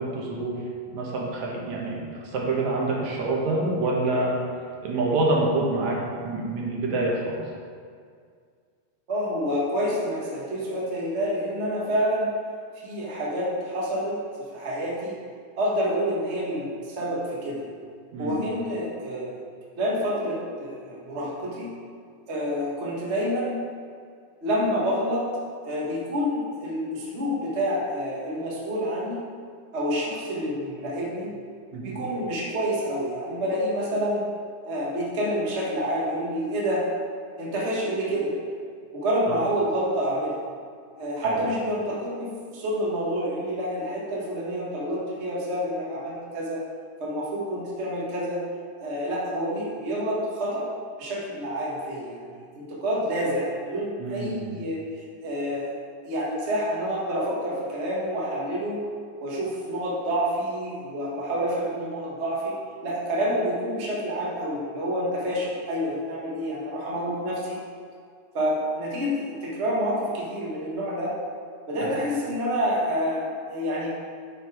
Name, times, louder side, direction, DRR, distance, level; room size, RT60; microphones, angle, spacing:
voice 1, 0.0-4.4 4.8-7.4 18.1-18.4 31.7-32.0 39.3-39.4 41.2-41.4 54.0-54.5 71.8-71.9, right 2 dB, 65° right, -2 dB, 2.3 m, -27 dB
voice 2, 9.1-12.3 12.8-15.2 15.6-17.6 18.2-19.4 19.8-21.7 22.3-23.6 24.4-25.3 25.6-29.2 29.7-31.3 31.8-34.2 34.6-36.8 37.4-38.3 38.9-40.4 41.0-46.6 47.0-48.4 48.8-50.7 51.0-55.8 56.0-58.8 59.2-62.5 62.8-67.6 68.3-71.1 71.7-73.9, equal, 50° right, -5 dB, 0.8 m, -28 dB
8.8 x 5.4 x 4.8 m, 2.1 s
omnidirectional pair, 3.8 m